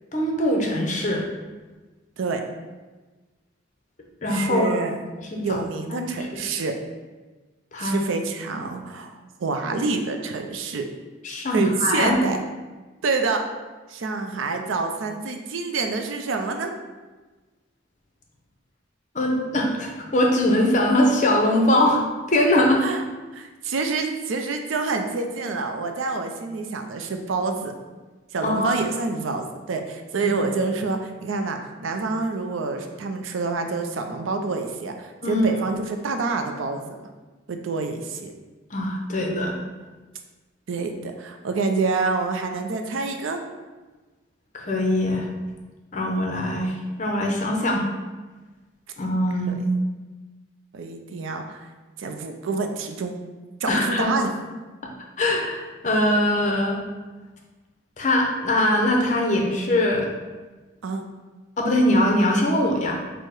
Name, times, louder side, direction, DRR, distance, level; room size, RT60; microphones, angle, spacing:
voice 1, 0.1-1.2 4.2-4.8 5.3-5.6 5.9-6.1 7.7-8.0 11.2-12.2 19.1-22.0 22.3-22.8 28.4-28.8 30.2-30.3 35.2-35.5 38.7-39.6 44.5-45.3 45.9-47.8 49.0-49.7 53.7-54.1 55.2-56.8 58.0-60.1 61.6-63.0, left 1 dB, 35° left, 1 dB, 0.6 m, -22 dB
voice 2, 4.3-5.0 5.4-6.8 7.8-10.9 11.5-12.4 13.0-13.4 13.9-16.7 22.8-23.0 23.3-27.7 28.3-37.1 37.5-38.3 40.7-43.4 49.5-49.6 50.7-51.7 52.0-53.1 53.6-54.3 60.8-61.1, right 4 dB, 85° right, 5 dB, 0.4 m, -27 dB
4.5 x 2.1 x 4.6 m, 1.3 s
head